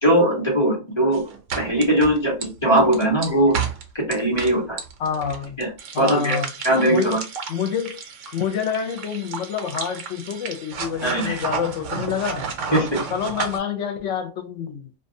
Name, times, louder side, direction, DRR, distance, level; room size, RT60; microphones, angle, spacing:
voice 1, 0.0-1.2 1.6-3.5 3.9-4.8 5.6-5.7 6.0-6.4 6.6-7.2 11.0-11.4 12.7-13.0, right 1 dB, 25° left, 1.1 m, -20 dB
sound 1, 1.1-13.6, right 5 dB, 85° right, 1.0 m, -32 dB
voice 2, 5.0-5.6 5.9-6.5 6.9-7.2 7.5-8.0 8.3-12.4 13.1-14.9, left 7 dB, 75° left, 1.0 m, -27 dB
2.5 x 2.4 x 2.6 m
omnidirectional pair, 1.3 m